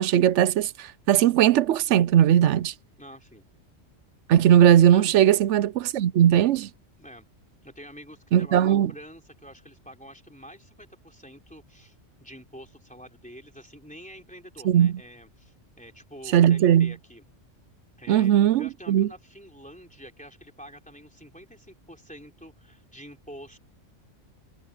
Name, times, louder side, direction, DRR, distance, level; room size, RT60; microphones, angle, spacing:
voice 1, 0.0-2.7 4.3-6.7 8.3-8.9 14.6-14.9 16.3-16.9 18.1-19.1, right 10 dB, 75° right, 0.9 m, -19 dB
voice 2, 3.0-3.4 4.9-5.1 7.0-7.2 7.6-17.2 18.0-18.3 18.6-23.6, equal, 5° left, 3.6 m, -47 dB
omnidirectional pair, 1.3 m